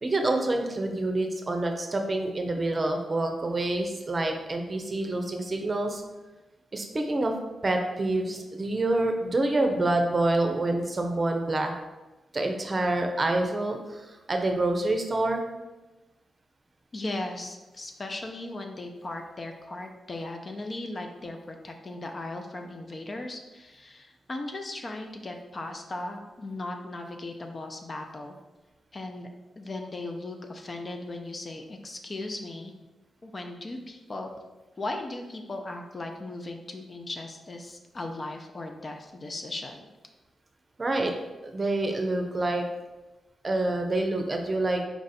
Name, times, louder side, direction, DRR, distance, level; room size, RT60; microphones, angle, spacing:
voice 1, 0.0-6.0 6.7-7.3 7.6-11.7 12.3-15.4 40.8-41.1 41.4-42.6 43.4-44.8, right 2 dB, 35° right, 4 dB, 0.6 m, -27 dB
voice 2, 16.9-28.4 28.9-29.3 29.6-32.7 33.2-34.3 34.8-39.9, left 2 dB, 40° left, 4 dB, 0.6 m, -37 dB
4.5 x 2.5 x 4.1 m, 1.1 s
cardioid pair, 65°, 0 cm